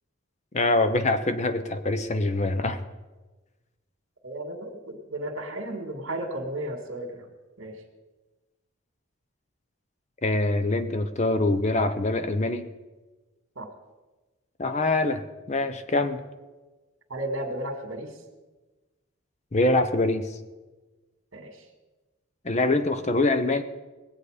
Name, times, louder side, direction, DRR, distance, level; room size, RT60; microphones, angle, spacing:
voice 1, 0.5-2.8 10.2-12.7 14.6-16.2 19.5-20.3 22.4-23.6, left 2 dB, 35° left, 10 dB, 0.7 m, -24 dB
voice 2, 4.2-7.3 7.6-7.8 13.6-13.7 17.1-18.2 21.3-21.7, right 1 dB, 75° right, 5 dB, 2.1 m, -34 dB
20.5 x 8.2 x 5.0 m, 1.2 s
head